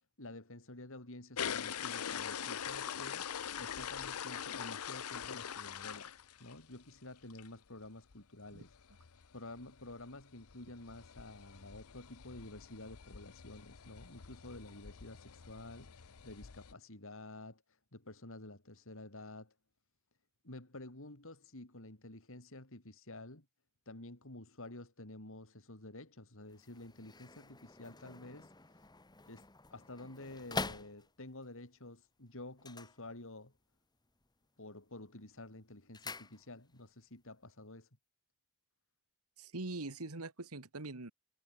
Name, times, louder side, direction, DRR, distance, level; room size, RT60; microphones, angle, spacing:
voice 1, 0.2-19.5 20.4-23.5 23.9-28.9 29.3-33.5 34.6-37.9, left 2 dB, 65° left, 3.9 m, -50 dB
sound 1, 1.4-6.8 7.2-7.5 7.8-7.9 8.1-8.2 8.5-16.7, left 8 dB, 80° left, 0.8 m, -44 dB
sound 2, 26.5-31.5 32.5-33.7 33.9-34.5 34.8-36.9 37.2-37.3, left 3 dB, 20° left, 1.7 m, -46 dB
voice 2, 39.4-41.1, right 2 dB, 75° right, 1.8 m, -43 dB
head